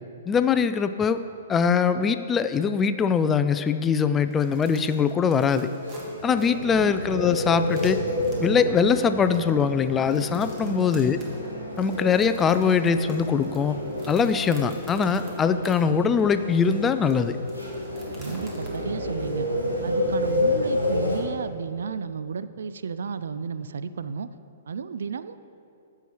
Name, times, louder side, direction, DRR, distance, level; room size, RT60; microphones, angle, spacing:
voice 1, 0.3-1.2 1.5-5.7 6.2-8.0 8.4-11.2 11.8-13.8 14.1-17.4, left 6 dB, 15° left, 11 dB, 0.3 m, -22 dB
sound 1, 4.0-15.8 16.2-16.3 16.7-18.8, right 2 dB, 25° right, 1.7 m, -50 dB
sound 2, 5.8-21.2, left 1 dB, 90° right, 1.8 m, -30 dB
voice 2, 10.6-10.9 18.2-19.5 19.8-24.3 24.7-25.4, right 6 dB, 65° right, 13 dB, 0.3 m, -33 dB
14.0 x 5.7 x 3.1 m, 2.5 s
figure-of-eight pair, 115°, 0 cm